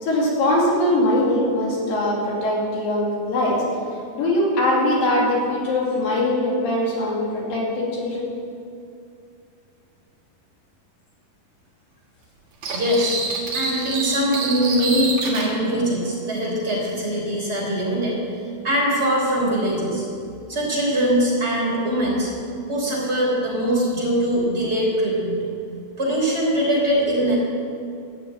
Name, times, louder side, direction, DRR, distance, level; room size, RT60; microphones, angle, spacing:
voice 1, 0.0-3.6 4.1-8.3, left 1 dB, 85° left, -4 dB, 4.2 m, -21 dB
sound 1, 12.6-15.5, right 3 dB, 70° right, 3.2 m, -27 dB
voice 2, 12.7-13.2 13.5-18.2 18.6-20.1 20.5-22.3 22.7-25.4 26.0-27.4, equal, 20° right, -5 dB, 3.6 m, -22 dB
12.5 x 7.1 x 8.9 m, 2.5 s
omnidirectional pair, 4.0 m